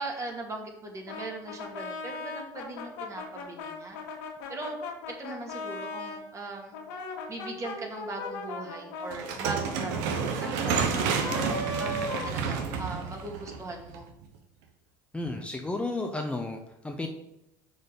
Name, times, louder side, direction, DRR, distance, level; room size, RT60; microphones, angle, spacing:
voice 1, 0.0-4.0 4.5-4.8 5.2-6.7 7.3-14.1, right 2 dB, 30° right, 1 dB, 2.3 m, -39 dB
Brass instrument, 1.1-6.2 6.7-13.0, left 2 dB, 75° left, 1.8 m, -38 dB
sound 1, 9.1-14.2, right 6 dB, 80° right, 1.1 m, -30 dB
voice 2, 15.1-17.1, left 2 dB, 10° left, 3 dB, 0.9 m, -33 dB
6.2 x 5.1 x 5.6 m, 0.84 s
supercardioid pair, 85°, 10 cm